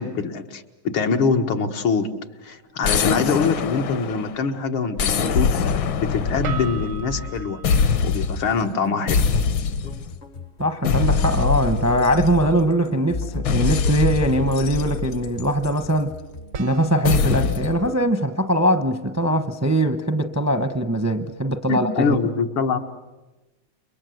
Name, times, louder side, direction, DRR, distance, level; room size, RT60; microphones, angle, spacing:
voice 1, 0.0-2.1 2.4-5.5 6.0-7.6 8.0-9.2 21.7-22.8, left 5 dB, 85° left, 2.4 m, -24 dB
sound 1, 2.1-2.2 6.4-8.8 11.2-13.7 16.5-19.6, right 7 dB, 85° right, 2.1 m, -40 dB
sound 2, 2.8-4.4 5.0-7.3 7.6-8.5 9.1-10.1 10.8-12.7 13.5-15.9 17.0-17.8, left 6 dB, 70° left, 1.8 m, -23 dB
sound 3, 5.7-18.1, left 3 dB, 40° left, 0.6 m, -37 dB
voice 2, 10.6-16.1 16.6-22.2, right 1 dB, 15° right, 0.5 m, -21 dB
29.0 x 23.5 x 7.9 m
omnidirectional pair, 2.2 m